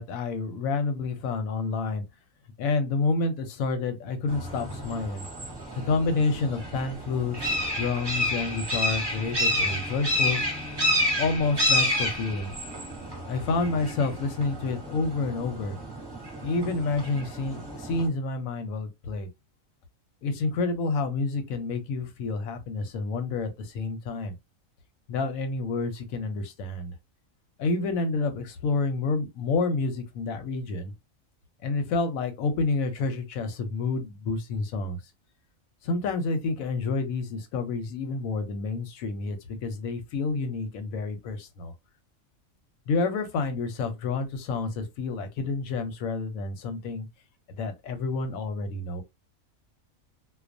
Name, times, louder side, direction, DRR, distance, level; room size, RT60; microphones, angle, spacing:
voice 1, 0.0-2.0 2.6-5.3 5.8-7.4 7.8-10.4 11.2-12.5 13.3-15.8 16.4-19.3 20.2-24.3 25.1-26.9 27.6-30.9 31.6-35.0 35.8-41.7 42.9-47.1 47.6-49.0, left 3 dB, 90° left, 1.0 m, -29 dB
sound 1, 4.3-18.1, left 1 dB, 20° right, 0.8 m, -30 dB
2.2 x 2.2 x 2.5 m
omnidirectional pair, 1.4 m